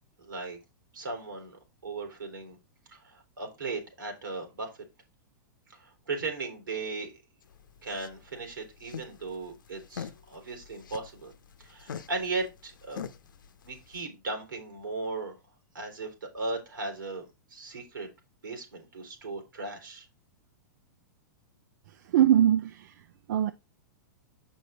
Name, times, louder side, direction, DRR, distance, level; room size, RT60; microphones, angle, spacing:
voice 1, 0.2-0.6 0.9-2.6 2.9-4.7 5.7-7.1 7.8-11.3 11.6-13.0 13.6-15.3 15.7-18.1 18.4-20.0, right 3 dB, 85° right, 3.4 m, -37 dB
sound 1, 7.4-14.0, left 7 dB, 80° left, 0.8 m, -45 dB
voice 2, 21.9-23.5, right 11 dB, 65° right, 0.5 m, -24 dB
6.9 x 5.4 x 4.2 m
hypercardioid pair, 110°, 11 cm